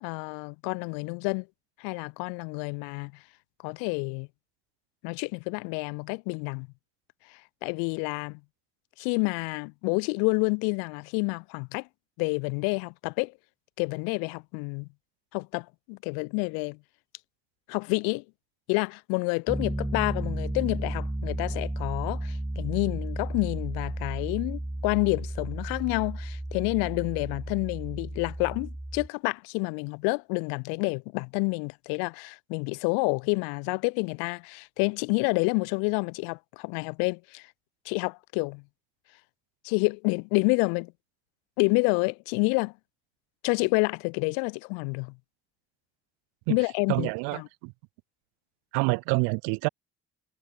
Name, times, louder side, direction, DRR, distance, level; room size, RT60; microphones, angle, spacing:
voice 1, 0.0-1.5 1.8-3.1 3.6-4.3 5.0-6.7 7.6-8.4 9.0-11.9 12.2-13.3 13.8-14.9 15.3-16.8 17.7-18.2 18.7-37.4 37.9-38.6 39.6-40.9 41.6-42.7 43.4-45.1 46.5-47.5, left 37 dB, 75° left, 2.0 m, -29 dB
Piano, 19.5-29.1, right 1 dB, 10° right, 4.7 m, -33 dB
voice 2, 46.9-47.7 48.7-49.7, right 32 dB, 75° right, 4.8 m, -27 dB
hypercardioid pair, 40°, 36 cm